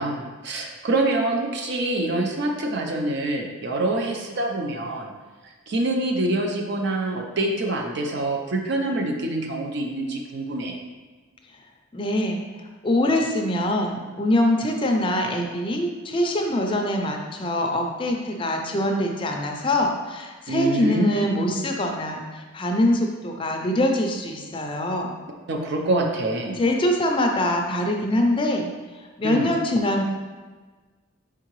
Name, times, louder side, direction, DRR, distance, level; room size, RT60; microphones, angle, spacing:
voice 1, 0.0-5.1 5.7-10.8 20.5-21.3 25.5-26.6 29.2-29.5, right 2 dB, 55° right, 2 dB, 0.5 m, -25 dB
voice 2, 11.9-12.4 12.8-25.2 26.6-28.7 29.2-30.0, left 1 dB, 25° left, 3 dB, 0.4 m, -23 dB
4.5 x 3.7 x 3.0 m, 1.3 s
head